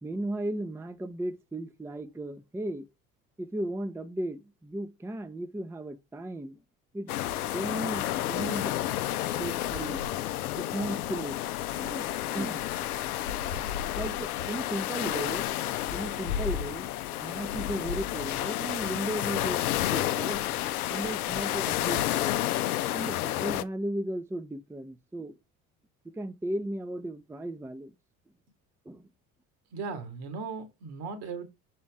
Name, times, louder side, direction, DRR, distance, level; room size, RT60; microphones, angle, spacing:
voice 1, 0.0-2.8 3.4-6.6 6.9-7.1 7.4-8.8 9.2-10.0 10.5-11.4 11.8-12.1 12.3-12.6 13.1-13.7 14.0-15.5 15.9-16.9 17.2-19.6 19.9-20.4 20.9-22.4 22.9-25.4 26.1-27.9 28.9-29.1, right 1 dB, 5° right, 0.6 m, -35 dB
sound 1, 7.1-23.6, left 13 dB, 90° left, 0.5 m, -31 dB
voice 2, 29.7-31.4, right 5 dB, 60° right, 2.2 m, -37 dB
6.1 x 4.3 x 3.6 m
hypercardioid pair, 60°, 43 cm